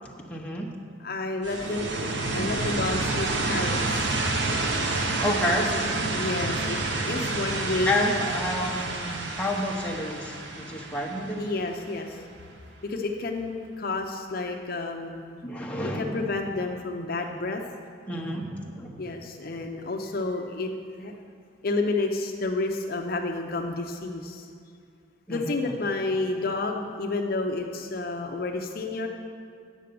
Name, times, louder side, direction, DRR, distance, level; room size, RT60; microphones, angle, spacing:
voice 1, 0.3-0.7 5.2-5.8 7.8-11.4 15.4-16.2 18.1-19.0 25.3-25.5, left 1 dB, 5° left, -1 dB, 0.9 m, -29 dB
voice 2, 1.0-1.9 2.3-4.1 5.7-5.8 6.1-8.2 11.4-12.2 12.8-15.4 15.8-17.6 19.0-21.1 21.6-24.5 25.3-29.1, left 2 dB, 50° left, 3 dB, 0.6 m, -30 dB
sound 1, 1.4-12.1, right 2 dB, 65° right, 0.9 m, -29 dB
9.0 x 6.7 x 6.8 m, 2.3 s
head